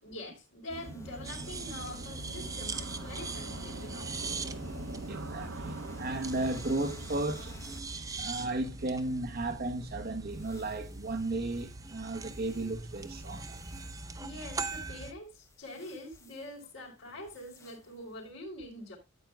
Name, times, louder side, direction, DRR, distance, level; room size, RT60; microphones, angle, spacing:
voice 1, 0.0-4.1 14.2-19.0, left 1 dB, 65° left, 4.0 m, -45 dB
sound 1, 0.7-7.9 10.4-11.6 12.3-14.1 14.5-14.9 15.5-16.6 17.0-18.0, equal, 15° left, 0.9 m, -50 dB
sound 2, 0.7-15.6, right 2 dB, 90° right, 1.3 m, -46 dB
sound 3, 1.2-15.1, right 3 dB, 15° right, 0.6 m, -42 dB
voice 2, 4.9-7.6 8.2-13.6, right 2 dB, 50° right, 1.0 m, -34 dB
13.5 x 9.0 x 2.3 m
head